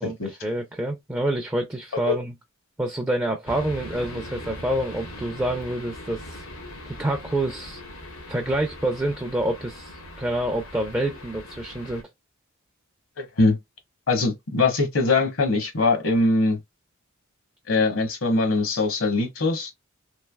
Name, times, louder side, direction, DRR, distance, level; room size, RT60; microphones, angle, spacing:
voice 1, 0.0-2.3 2.8-6.4 6.9-7.8 8.3-12.0, right 1 dB, 10° right, 0.4 m, -27 dB
sound 1, 3.5-12.0, left 1 dB, 90° left, 1.3 m, -40 dB
voice 2, 13.2-13.6 14.1-16.6 17.7-19.7, left 3 dB, 65° left, 1.0 m, -22 dB
3.2 x 2.7 x 2.2 m
head